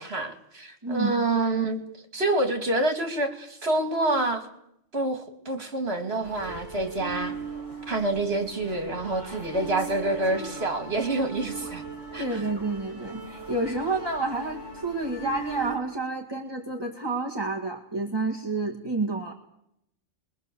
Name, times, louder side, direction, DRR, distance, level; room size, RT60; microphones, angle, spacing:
voice 1, 0.0-1.8 2.1-4.5 4.9-7.4 7.9-11.8 12.1-12.4, right 2 dB, 55° right, 5 dB, 2.9 m, -27 dB
voice 2, 0.8-1.1 12.2-19.3, right 3 dB, 20° right, 0 dB, 1.8 m, -29 dB
sound 1, 6.2-15.8, right 4 dB, 35° left, 5.8 m, -39 dB
23.0 x 22.5 x 7.1 m, 0.77 s
omnidirectional pair, 1.3 m